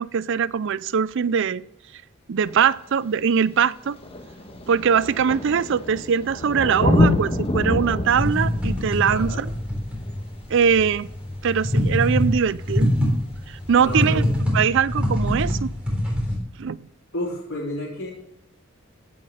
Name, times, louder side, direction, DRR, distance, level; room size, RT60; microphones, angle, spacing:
voice 1, 0.0-1.6 2.3-4.0 4.7-9.5 10.5-11.1 11.4-12.9 13.5-14.2 14.5-15.7 16.6-16.8, right 7 dB, 65° right, 0.5 m, -22 dB
Thunder, 2.5-2.6 3.5-3.6 3.8-11.2 12.8-12.9, left 1 dB, 30° left, 1.4 m, -26 dB
sound 1, 8.1-16.4, equal, 5° right, 3.7 m, -24 dB
voice 2, 9.1-9.5 13.7-14.3 16.3-16.4 17.1-18.1, left 1 dB, 90° left, 4.0 m, -31 dB
16.0 x 5.9 x 6.6 m
head